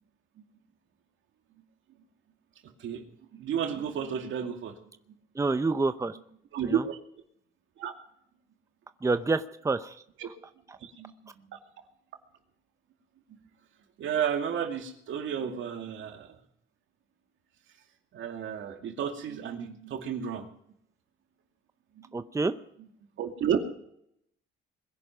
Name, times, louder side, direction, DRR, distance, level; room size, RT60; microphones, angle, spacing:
voice 1, 3.3-4.8 6.5-7.0 7.8-7.9 10.2-10.3 10.8-11.6 14.0-16.3 18.1-20.5 22.0-22.2 23.2-23.6, right 8 dB, 75° right, 4 dB, 2.5 m, -32 dB
voice 2, 5.3-6.2 6.6-6.8 9.0-10.0 22.1-22.5, right 3 dB, 15° right, 11 dB, 0.7 m, -27 dB
21.5 x 10.5 x 6.0 m, 0.70 s
cardioid pair, 90°, 20 cm